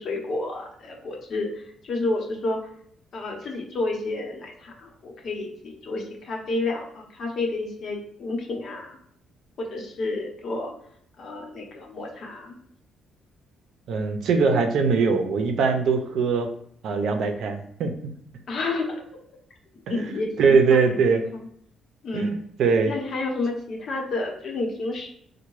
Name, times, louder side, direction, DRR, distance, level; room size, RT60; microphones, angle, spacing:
voice 1, 0.0-2.6 3.1-9.0 9.6-10.7 11.2-12.6 18.5-19.0 19.9-21.5 22.0-22.4 22.9-25.1, left 2 dB, 60° left, 1 dB, 0.9 m, -30 dB
voice 2, 13.9-16.5 16.8-18.1 19.9-21.2 22.1-22.9, right 5 dB, 75° right, 5 dB, 0.5 m, -22 dB
4.3 x 2.2 x 3.1 m, 0.66 s
cardioid pair, 90°, 0 cm